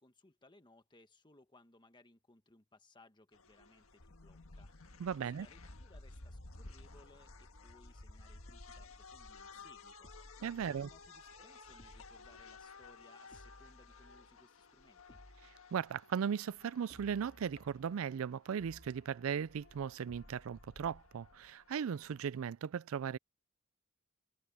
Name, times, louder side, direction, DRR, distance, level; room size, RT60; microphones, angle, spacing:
voice 1, 0.0-15.2, left 2 dB, 20° left, 1.4 m, -64 dB
sound 1, 3.3-22.3, left 3 dB, 80° left, 1.6 m, -56 dB
voice 2, 5.0-5.5 10.4-10.9 15.7-23.2, right 7 dB, 75° right, 0.4 m, -37 dB
sound 2, 7.1-7.8 8.5-9.1 10.0-11.1 11.8-12.4 13.3-14.4 15.1-15.7 16.9-18.0 18.6-19.2 20.1-20.7, equal, 40° left, 2.3 m, -60 dB
head